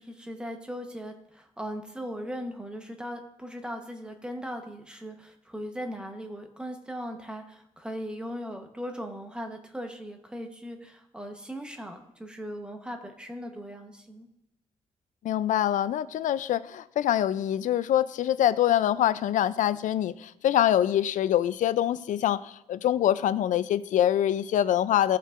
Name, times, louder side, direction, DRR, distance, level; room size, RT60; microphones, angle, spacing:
voice 1, 0.0-14.3, equal, 5° right, 4 dB, 1.0 m, -38 dB
voice 2, 15.2-25.2, left 11 dB, 80° left, 16 dB, 0.4 m, -25 dB
14.5 x 5.4 x 2.5 m, 0.83 s
cardioid pair, 120°, 13 cm